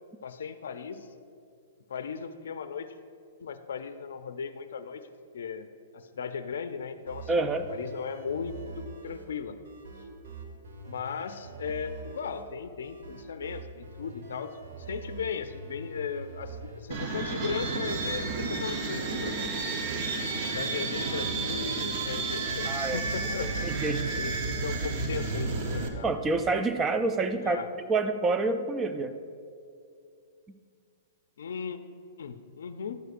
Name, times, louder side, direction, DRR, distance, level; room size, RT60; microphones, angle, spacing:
voice 1, 0.2-1.1 1.9-2.9 3.4-5.0 5.3-5.7 5.9-9.6 10.9-14.6 14.9-19.5 20.4-23.5 24.1-26.1 27.4-27.7 31.4-31.8 32.2-33.0, left 6 dB, 85° left, 9 dB, 0.4 m, -37 dB
sound 1, 7.0-25.2, right 3 dB, 80° right, 1.3 m, -45 dB
voice 2, 7.3-7.7 22.6-23.0 23.6-24.0 26.0-27.6 27.8-29.1, right 3 dB, 15° right, 10 dB, 0.3 m, -27 dB
sound 2, 16.9-25.9, right 3 dB, 40° right, 0.9 m, -31 dB
11.5 x 7.9 x 2.5 m, 2.3 s
hypercardioid pair, 150°, 0 cm